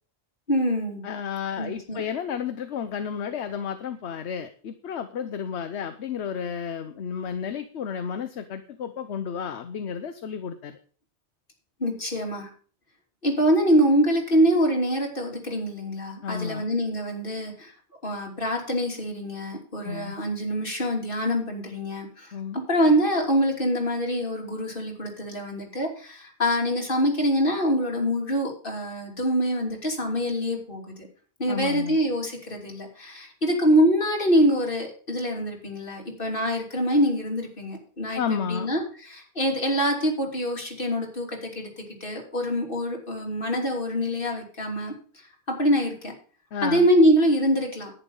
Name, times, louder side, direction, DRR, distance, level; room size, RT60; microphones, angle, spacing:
voice 1, 0.5-1.0 1.6-2.0 11.8-12.5 13.2-17.7 18.0-30.9 31.4-44.9 45.5-46.1 46.6-47.9, equal, 50° left, 0 dB, 3.2 m, -25 dB
voice 2, 1.0-10.8 16.2-16.7 19.8-20.2 22.3-22.6 31.5-32.0 38.1-38.7 46.5-46.9, left 7 dB, 75° left, 8 dB, 1.1 m, -32 dB
11.0 x 9.6 x 5.4 m, 0.42 s
omnidirectional pair, 1.1 m